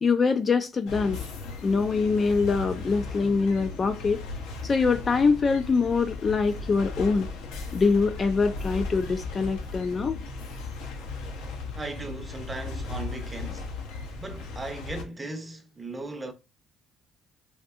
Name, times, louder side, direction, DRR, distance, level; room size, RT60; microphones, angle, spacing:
voice 1, 0.0-1.2 1.6-4.2 4.6-7.3 7.7-10.2, left 4 dB, 30° left, 0.3 m, -24 dB
sound 1, 0.9-15.0, left 3 dB, 90° left, 0.8 m, -37 dB
voice 2, 11.7-13.7 14.2-16.3, right 2 dB, 15° right, 0.6 m, -37 dB
3.5 x 2.6 x 2.4 m
cardioid pair, 125°, 0 cm